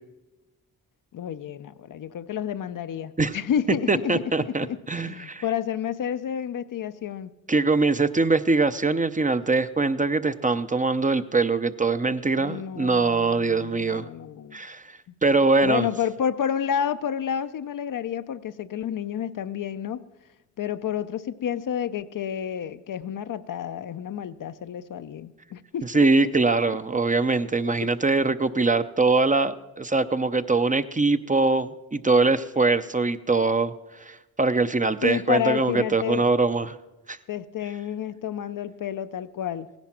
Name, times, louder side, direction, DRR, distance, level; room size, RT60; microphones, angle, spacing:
voice 1, 1.1-7.4 12.4-14.6 15.6-20.0 20.6-26.3 27.6-27.9 35.0-36.2 37.3-39.7, left 9 dB, 60° left, 11 dB, 0.7 m, -30 dB
voice 2, 3.9-5.4 7.5-14.0 14.5-14.8 15.2-15.9 25.9-33.7 34.0-36.8 37.1-37.2, right 3 dB, 20° right, 11 dB, 0.7 m, -22 dB
16.5 x 10.5 x 5.9 m, 1.0 s
supercardioid pair, 50°, 35 cm